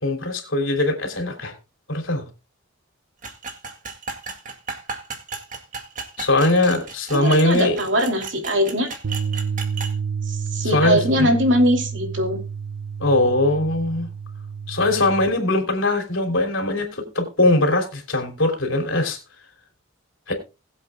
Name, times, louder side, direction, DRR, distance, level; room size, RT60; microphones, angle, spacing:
voice 1, 0.0-1.5 1.9-2.2 6.2-7.8 10.6-11.3 13.0-14.1 14.7-19.2 20.3-20.4, left 2 dB, 70° left, 3.2 m, -21 dB
sound 1, 3.2-9.9, right 4 dB, 40° right, 2.1 m, -35 dB
voice 2, 7.1-8.9 10.3-12.4, equal, 65° right, 2.8 m, -21 dB
Bass guitar, 9.0-15.3, right 6 dB, 85° right, 0.7 m, -30 dB
21.0 x 7.9 x 2.3 m
head